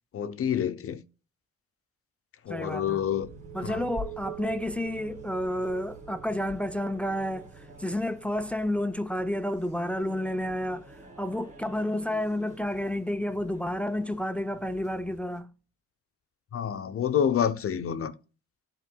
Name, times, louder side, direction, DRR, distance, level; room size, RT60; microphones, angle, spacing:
voice 1, 0.1-1.0 2.4-3.3 3.6-3.9 16.5-18.1, left 8 dB, 50° left, 0.7 m, -28 dB
sound 1, 2.4-14.0, right 10 dB, 45° right, 1.5 m, -47 dB
voice 2, 2.5-3.0 3.5-15.5, left 1 dB, 5° left, 0.4 m, -31 dB
sound 2, 3.2-15.4, left 1 dB, 25° right, 1.9 m, -48 dB
11.0 x 4.4 x 2.2 m
cardioid pair, 90°, 30 cm